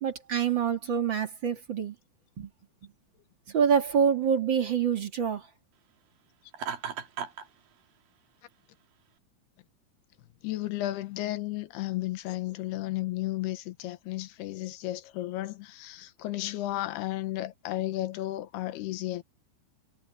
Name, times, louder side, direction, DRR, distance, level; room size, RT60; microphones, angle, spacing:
voice 1, 0.0-1.9 2.4-2.5 3.5-5.5, right 7 dB, 35° right, 2.2 m, -26 dB
Laughter, 6.5-7.5, right 7 dB, 65° right, 3.7 m, -35 dB
voice 2, 10.4-19.2, left 16 dB, 90° left, 3.1 m, -33 dB
omnidirectional pair, 4.5 m